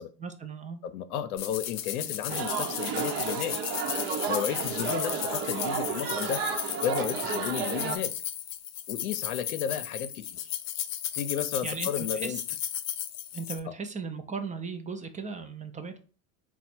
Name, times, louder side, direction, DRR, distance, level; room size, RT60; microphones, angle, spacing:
voice 1, 0.2-0.8 11.6-12.4 13.3-16.0, right 5 dB, 20° right, 0.5 m, -37 dB
voice 2, 0.9-3.6 4.3-6.4 6.8-8.1 8.9-10.4 11.1-12.4 13.7-13.8, left 9 dB, 85° left, 0.6 m, -33 dB
sound 1, 1.4-13.6, left 11 dB, 40° left, 0.5 m, -35 dB
sound 2, 2.3-8.0, right 6 dB, 55° right, 0.9 m, -32 dB
4.0 x 2.2 x 4.3 m
hypercardioid pair, 90°, 42 cm